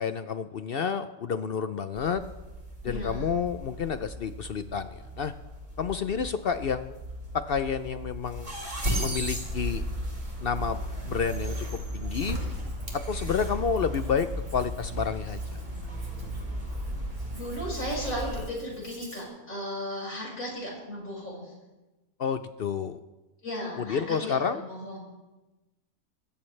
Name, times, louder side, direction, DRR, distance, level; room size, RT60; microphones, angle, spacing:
voice 1, 0.0-2.2 2.8-5.3 5.8-7.0 7.5-8.5 9.0-9.8 10.4-10.8 11.0-12.4 13.1-14.3 14.5-15.6 22.2-23.0 23.8-24.6, left 6 dB, 60° left, 11 dB, 0.6 m, -30 dB
sound 1, 1.9-18.5, equal, 60° right, 7.4 m, -35 dB
voice 2, 2.8-3.3 17.3-21.5 23.4-25.1, left 1 dB, 75° left, -4 dB, 6.5 m, -35 dB
Hands, 12.3-19.2, right 2 dB, 40° right, 3.1 m, -53 dB
24.5 x 14.0 x 3.3 m, 1.1 s
omnidirectional pair, 1.5 m